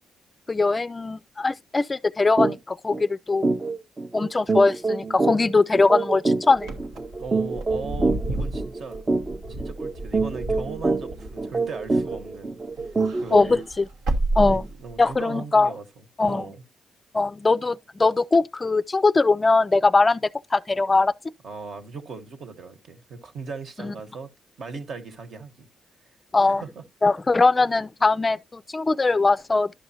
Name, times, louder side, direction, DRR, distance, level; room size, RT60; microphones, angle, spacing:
voice 1, 0.5-3.5 4.1-6.7 13.3-13.8 14.4-14.6 15.0-15.7 16.2-16.5 17.1-21.1 23.8-23.9 26.3-26.6 27.0-29.7, left 3 dB, 25° left, 0.3 m, -21 dB
sound 1, 2.4-2.6 2.9-3.0 3.4-13.7, right 3 dB, 30° right, 0.5 m, -26 dB
Wind / Car, 6.6-12.4 12.7-15.2, right 2 dB, 85° right, 1.2 m, -31 dB
voice 2, 7.2-9.0 9.5-12.6 13.2-13.6 14.4-15.8 16.2-16.6 21.4-24.3 24.6-25.7 26.4-26.8, right 4 dB, 60° right, 1.3 m, -38 dB
11.5 x 5.4 x 2.8 m
cardioid pair, 75°, 0 cm